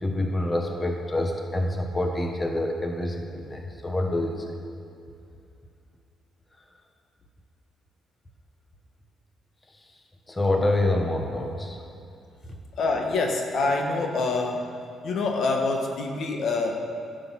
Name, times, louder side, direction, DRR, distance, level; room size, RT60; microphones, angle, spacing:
voice 1, 0.0-4.6 10.3-11.8, left 1 dB, 20° left, 3 dB, 1.2 m, -26 dB
voice 2, 12.8-14.7 15.0-16.8, left 3 dB, 60° left, 3 dB, 1.3 m, -26 dB
11.5 x 7.7 x 5.9 m, 2.6 s
cardioid pair, 95°, 0 cm